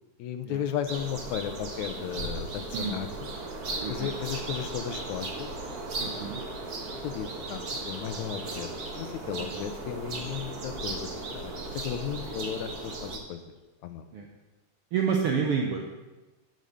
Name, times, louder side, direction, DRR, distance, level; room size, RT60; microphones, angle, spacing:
voice 1, 0.2-3.3 3.9-5.5 6.0-6.3 7.0-8.7 9.0-13.5 13.8-14.1, left 9 dB, 80° left, 9 dB, 2.0 m, -35 dB
sound 1, 0.9-13.2, right 2 dB, 50° right, 1.1 m, -36 dB
voice 2, 3.8-4.1 6.0-6.4 9.3-9.6 10.3-10.4 14.1-14.3 14.9-15.8, right 6 dB, 70° right, 1 dB, 1.4 m, -29 dB
10.5 x 5.3 x 6.4 m, 1.1 s
omnidirectional pair, 3.5 m